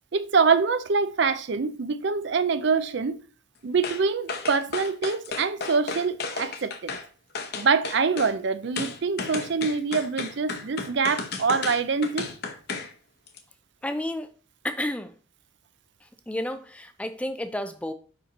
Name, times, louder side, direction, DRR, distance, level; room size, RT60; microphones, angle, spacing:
voice 1, 0.1-3.2 3.6-7.0 7.5-12.3, right 5 dB, 55° right, 0.5 m, -25 dB
sound 1, 3.8-4.0 4.3-7.0 7.3-8.3 8.8-12.9 13.3-13.4, left 4 dB, 50° left, 0.9 m, -33 dB
voice 2, 13.8-14.3 14.6-15.1 16.0-17.9, left 1 dB, 5° left, 0.4 m, -31 dB
5.2 x 5.1 x 4.1 m
head